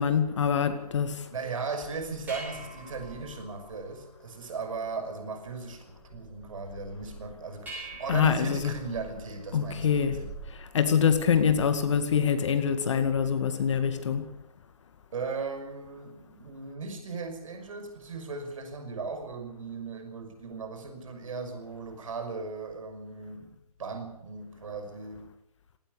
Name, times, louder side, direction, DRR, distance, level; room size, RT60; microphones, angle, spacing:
voice 1, 0.0-1.2 8.1-8.7 9.5-10.2 10.7-14.2, left 7 dB, 50° left, 2.2 m, -25 dB
voice 2, 1.3-10.3 15.1-25.3, right 4 dB, 55° right, 5.9 m, -37 dB
sound 1, 1.8-11.8, right 2 dB, 10° right, 7.3 m, -46 dB
19.0 x 18.0 x 8.3 m
hypercardioid pair, 150°, 20 cm